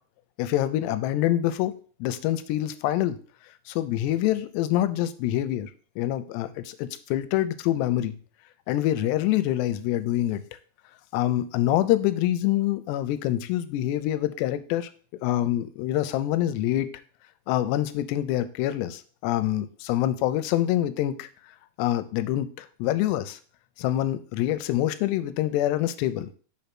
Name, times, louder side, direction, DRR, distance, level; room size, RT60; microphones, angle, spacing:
voice 1, 0.4-1.7 2.0-3.2 3.7-5.7 6.0-8.2 8.7-10.4 11.1-14.9 15.2-16.9 17.5-21.3 21.8-23.4 23.8-26.3, left 13 dB, 85° left, 12 dB, 2.7 m, -25 dB
5.6 x 4.3 x 5.8 m, 0.41 s
omnidirectional pair, 4.8 m